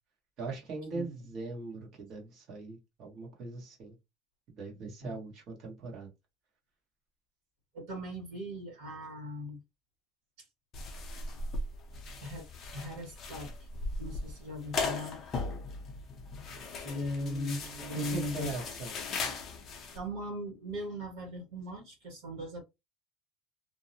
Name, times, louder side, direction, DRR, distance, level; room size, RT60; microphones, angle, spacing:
voice 1, 0.4-3.9 4.6-6.1 17.2-18.9, right 4 dB, 40° right, 1.1 m, -41 dB
voice 2, 7.7-9.6 10.4-10.5 12.2-12.5 12.7-13.7 14.0-15.2 16.7-18.6 19.9-22.6, left 1 dB, 65° right, 1.6 m, -39 dB
sound 1, 10.7-20.0, left 3 dB, 30° left, 0.6 m, -38 dB
2.6 x 2.0 x 2.7 m
cardioid pair, 160°, 0 cm